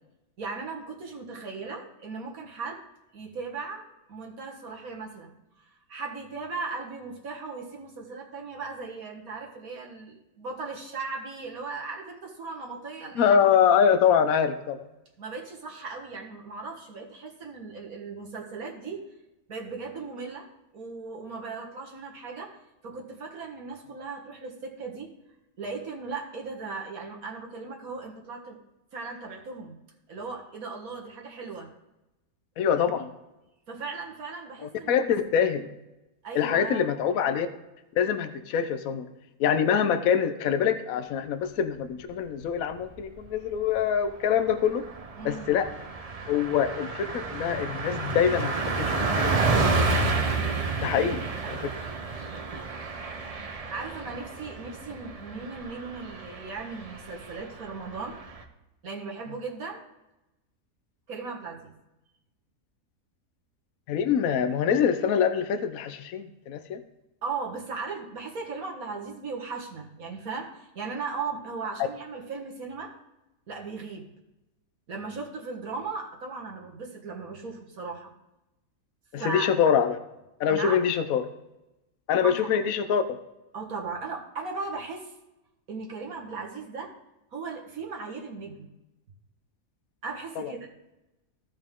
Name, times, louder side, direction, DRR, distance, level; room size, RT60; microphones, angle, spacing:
voice 1, 0.4-2.8 3.1-5.3 5.6-13.4 15.2-19.0 19.5-20.5 20.7-25.1 25.6-28.6 28.9-29.8 30.1-31.7 32.8-33.0 33.7-35.0 36.2-36.9 45.2-45.6 50.9-51.8 53.7-58.2 58.8-59.8 61.1-61.7 67.2-72.9 73.5-74.1 74.9-78.1 79.2-79.8 80.5-80.8 82.2-82.7 83.5-85.1 85.7-86.9 87.3-88.7 90.0-90.7, right 4 dB, 70° right, 0 dB, 2.0 m, -37 dB
voice 2, 13.2-14.8 32.6-33.1 34.9-35.7 36.3-37.5 38.0-39.1 39.4-44.8 45.2-45.7 46.3-49.3 50.8-51.6 63.9-66.8 79.1-80.0 80.4-81.3 82.1-83.2 90.4-90.5, left 8 dB, 70° left, 10 dB, 1.1 m, -24 dB
Car passing by, 42.8-43.4 43.7-43.9 44.2-58.4, right 3 dB, 35° right, 0.7 m, -30 dB
15.0 x 5.2 x 3.7 m, 0.97 s
omnidirectional pair, 1.5 m